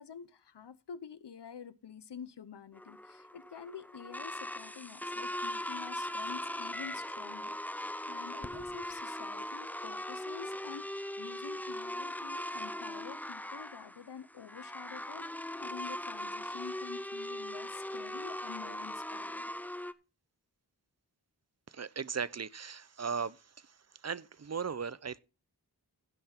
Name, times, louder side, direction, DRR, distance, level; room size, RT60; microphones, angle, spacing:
voice 1, 0.0-19.4, left 7 dB, 90° left, 0.8 m, -48 dB
sound 1, 2.8-19.9, left 1 dB, 5° left, 0.5 m, -40 dB
voice 2, 21.7-23.7 24.0-25.2, right 6 dB, 40° right, 0.5 m, -37 dB
16.0 x 5.7 x 4.4 m
wide cardioid pair, 55°, 40 cm